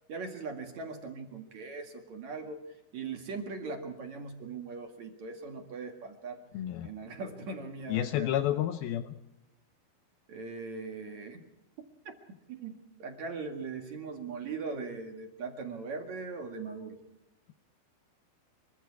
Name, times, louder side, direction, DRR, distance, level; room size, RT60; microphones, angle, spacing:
voice 1, 0.1-2.6 2.9-6.4 6.8-8.3 10.3-11.4 11.8-12.1 12.5-12.7 13.0-17.0, right 4 dB, 50° right, 4 dB, 2.9 m, -40 dB
voice 2, 6.5-6.9 7.9-9.1, left 12 dB, 75° left, 9 dB, 2.6 m, -30 dB
26.0 x 24.0 x 4.7 m, 0.92 s
omnidirectional pair, 4.5 m